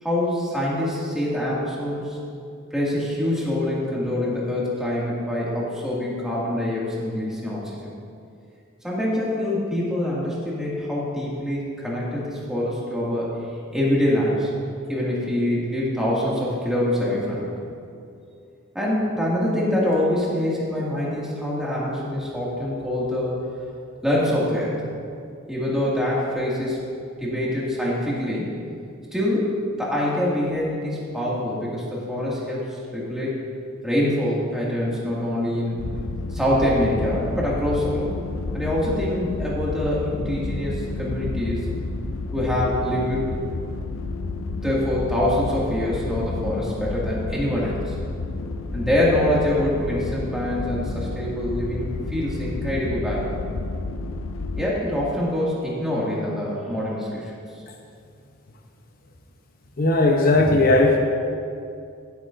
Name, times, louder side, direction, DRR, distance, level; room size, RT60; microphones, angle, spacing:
voice 1, 0.0-2.2 2.7-7.9 8.8-13.3 13.7-14.5 14.9-17.5 18.7-23.4 24.0-24.8 25.5-26.8 27.2-28.5 29.1-33.3 33.8-35.8 36.3-38.1 38.5-41.6 42.3-43.2 44.6-48.0 48.7-53.3 54.6-57.3, left 1 dB, 5° right, -7 dB, 2.1 m, -25 dB
sound 1, 35.8-54.7, left 3 dB, 85° left, 0.5 m, -30 dB
voice 2, 59.8-61.0, left 2 dB, 45° left, 2 dB, 0.8 m, -17 dB
15.5 x 8.4 x 2.6 m, 2.4 s
head